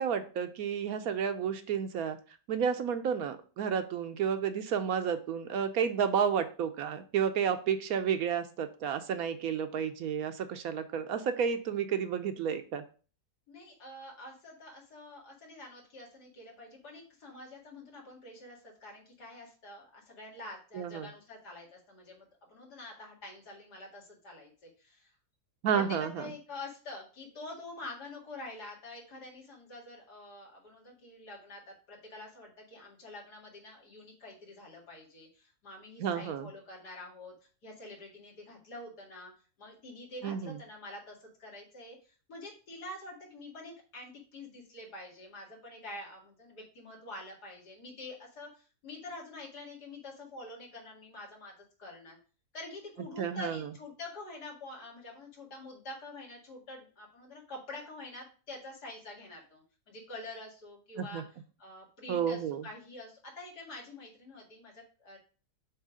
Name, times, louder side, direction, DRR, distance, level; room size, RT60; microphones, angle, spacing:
voice 1, 0.0-2.2 2.5-12.8 20.7-21.1 25.6-26.2 36.0-36.5 40.2-40.6 53.2-53.6 61.0-61.2 62.1-62.6, right 7 dB, 70° right, 9 dB, 1.1 m, -31 dB
voice 2, 13.5-25.1 25.7-37.3 37.6-39.3 39.6-51.5 51.8-52.2 52.5-61.2 61.6-65.2, left 2 dB, 85° left, -1 dB, 2.6 m, -47 dB
7.3 x 3.1 x 4.9 m, 0.37 s
omnidirectional pair, 1.7 m